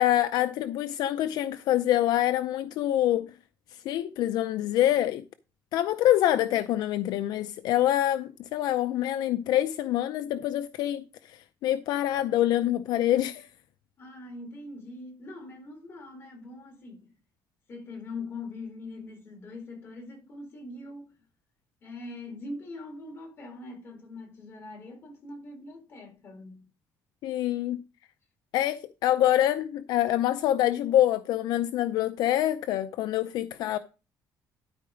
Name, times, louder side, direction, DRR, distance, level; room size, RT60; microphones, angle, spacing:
voice 1, 0.0-3.3 3.7-5.2 5.7-13.5 27.2-27.8 28.5-33.8, left 12 dB, 70° left, 0.5 m, -26 dB
voice 2, 14.0-17.1 17.7-21.1 21.8-26.7, left 2 dB, 30° left, 4.1 m, -42 dB
12.5 x 4.7 x 5.0 m
cardioid pair, 165°, 7 cm